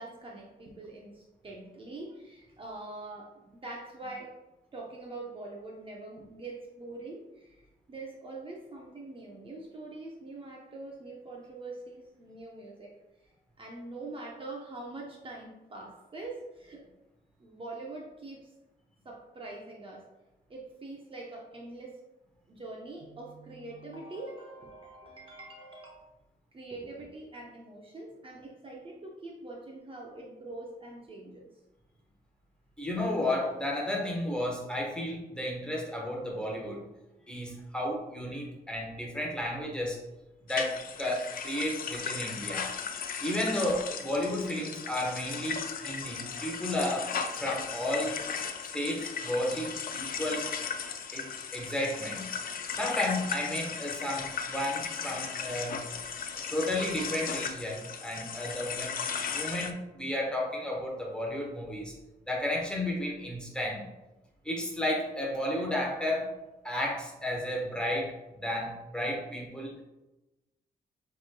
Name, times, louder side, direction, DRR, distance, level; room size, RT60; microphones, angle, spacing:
voice 1, 0.0-4.3 4.7-7.6 7.9-12.9 13.6-16.8 17.4-18.5 19.0-20.1 20.5-22.0 22.5-26.0 26.5-31.5, right 2 dB, 35° right, -2 dB, 0.7 m, -44 dB
voice 2, 32.8-36.8 37.3-40.0 40.5-42.7 43.2-47.1 47.4-48.2 48.7-50.5 51.1-52.3 52.7-55.8 56.5-58.9 59.3-61.9 62.3-63.8 64.4-66.3 66.6-68.1 68.4-69.8, left 1 dB, 5° left, -2 dB, 1.1 m, -32 dB
sound 1, 40.5-59.7, left 6 dB, 65° left, 0.4 m, -36 dB
7.0 x 3.1 x 2.2 m, 1.0 s
cardioid pair, 110°, 16 cm